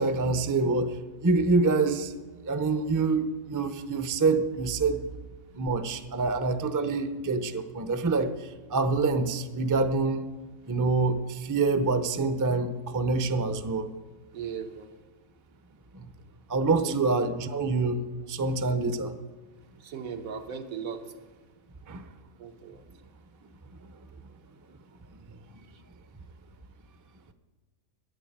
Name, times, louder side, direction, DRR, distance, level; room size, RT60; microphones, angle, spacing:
voice 1, 0.0-2.1 2.4-5.0 5.5-10.2 10.7-13.9 15.9-16.1 16.5-19.1 21.9-22.1, right 3 dB, 25° right, 10 dB, 0.4 m, -26 dB
voice 2, 14.3-14.9 16.8-17.0 19.8-21.0 22.4-22.8, right 7 dB, 85° right, 6 dB, 1.5 m, -37 dB
10.5 x 9.1 x 8.5 m, 1.3 s
omnidirectional pair, 1.4 m